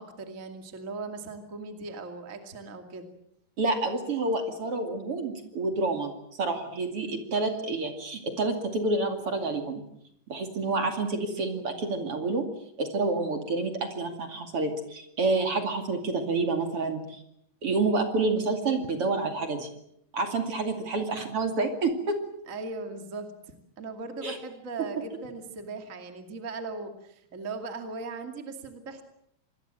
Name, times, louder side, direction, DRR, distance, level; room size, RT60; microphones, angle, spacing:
voice 1, 0.0-3.1 7.0-7.3 20.2-20.5 22.5-23.3 23.8-29.0, right 3 dB, 25° right, 5 dB, 2.4 m, -39 dB
voice 2, 3.6-9.8 10.3-12.5 12.8-17.2 17.6-19.7 20.1-22.2 24.2-24.4, right 3 dB, 45° right, 5 dB, 3.2 m, -28 dB
26.5 x 21.0 x 7.7 m, 0.75 s
omnidirectional pair, 3.8 m